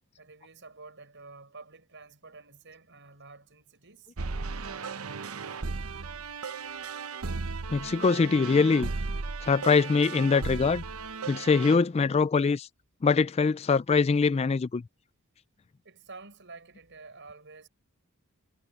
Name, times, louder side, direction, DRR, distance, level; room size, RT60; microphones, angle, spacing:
voice 1, 0.2-4.1 15.8-17.7, right 3 dB, 55° right, 7.1 m, -49 dB
sound 1, 4.2-11.8, right 4 dB, 75° right, 0.9 m, -36 dB
voice 2, 7.7-8.9 9.4-10.8 11.3-12.7 13.0-14.8, left 4 dB, 30° left, 0.3 m, -23 dB
head